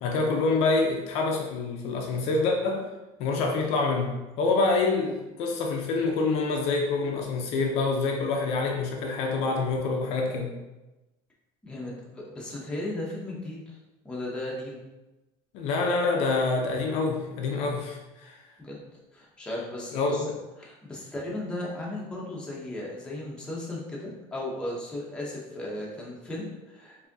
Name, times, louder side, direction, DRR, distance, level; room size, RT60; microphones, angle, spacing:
voice 1, 0.0-2.9 3.2-4.1 4.4-10.5 15.5-18.4 19.9-20.3, left 3 dB, 55° left, 1 dB, 0.6 m, -26 dB
voice 2, 11.6-13.8 14.0-14.8 18.6-18.8 19.1-20.2 20.6-27.1, left 1 dB, 10° left, -5 dB, 0.8 m, -36 dB
4.7 x 2.7 x 2.7 m, 1.0 s
cardioid pair, 160°, 12 cm